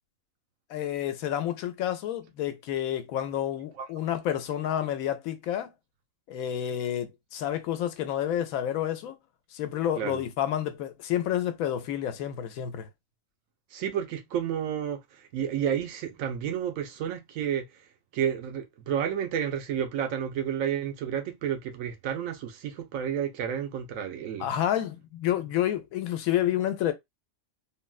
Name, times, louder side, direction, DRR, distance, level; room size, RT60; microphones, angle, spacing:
voice 1, 0.7-5.7 6.3-9.1 9.5-12.9 24.4-26.9, left 11 dB, 85° left, 1.0 m, -29 dB
voice 2, 13.7-17.6 18.1-24.5, right 9 dB, 80° right, 1.1 m, -31 dB
3.7 x 2.1 x 2.3 m
omnidirectional pair, 1.4 m